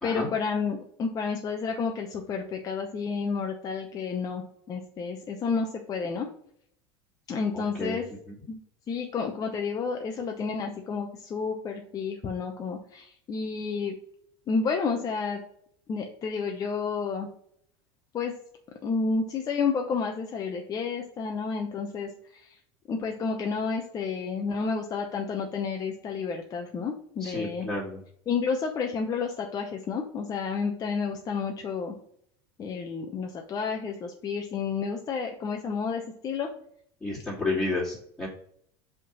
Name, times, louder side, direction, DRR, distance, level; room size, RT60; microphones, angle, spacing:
voice 1, 0.0-6.3 7.3-8.1 8.5-8.6 8.9-13.9 14.5-15.4 15.9-17.3 18.1-18.3 18.8-22.5 22.9-27.7 28.3-31.9 32.6-36.5, left 5 dB, 30° left, 2 dB, 0.8 m, -30 dB
voice 2, 7.5-8.0 8.3-8.4 27.2-28.0 37.0-38.3, left 2 dB, 10° left, -9 dB, 2.6 m, -31 dB
5.2 x 3.7 x 5.3 m, 0.66 s
supercardioid pair, 120°, 12 cm